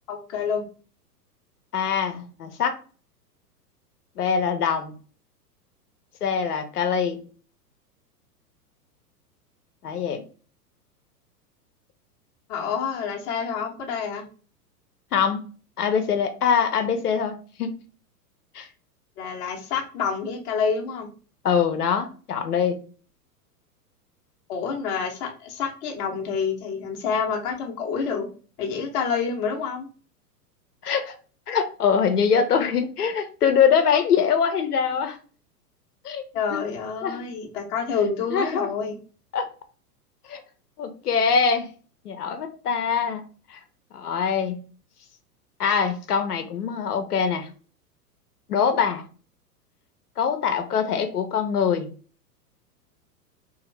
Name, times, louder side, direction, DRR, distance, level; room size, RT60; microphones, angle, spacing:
voice 1, 0.1-0.6 12.5-14.3 19.2-21.1 24.5-28.3 28.6-29.9 36.3-39.0, left 6 dB, 25° left, 0 dB, 0.6 m, -28 dB
voice 2, 1.7-2.8 4.2-4.9 6.2-7.2 9.8-10.2 15.1-15.4 15.8-17.7 18.5-18.7 21.4-22.8 30.8-31.1 31.5-35.2 36.0-36.2 36.5-36.6 37.0-37.2 38.3-38.7 39.3-39.5 40.3-40.4 40.8-41.7 42.0-43.2 43.5-43.6 43.9-44.6 45.6-47.5 48.5-49.0 50.2-51.9, left 7 dB, 70° left, 7 dB, 0.6 m, -23 dB
2.6 x 2.4 x 2.9 m, 0.38 s
figure-of-eight pair, 100°, 48 cm